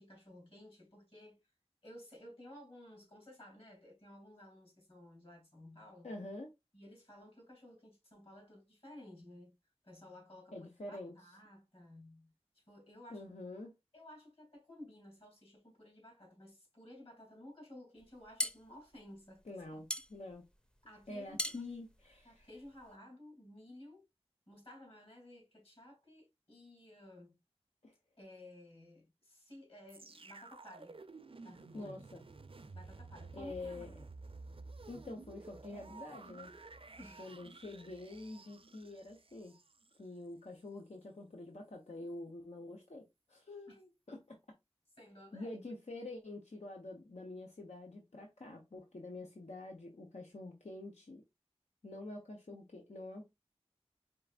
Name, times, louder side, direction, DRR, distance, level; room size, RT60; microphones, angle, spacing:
voice 1, 0.0-1.4 1.8-6.1 6.7-9.6 9.8-13.3 13.9-19.4 19.7-19.8 20.8-21.7 22.2-24.1 24.5-27.4 28.2-31.0 31.4-32.0 32.7-33.8 37.0-37.3 43.7-43.8 45.0-45.6, left 1 dB, 55° left, 2.7 m, -55 dB
voice 2, 6.0-6.5 10.5-11.1 13.1-13.7 19.5-20.4 21.1-22.5 27.8-27.9 31.7-32.2 33.3-33.9 34.9-36.5 37.2-39.5 40.0-44.4 45.3-51.2 51.8-53.2, left 2 dB, 90° left, 0.8 m, -47 dB
sound 1, 18.0-23.0, equal, 5° left, 0.5 m, -42 dB
sound 2, 29.9-40.0 40.6-40.7, right 3 dB, 55° right, 0.5 m, -53 dB
4.6 x 3.3 x 2.4 m
wide cardioid pair, 45°, 11 cm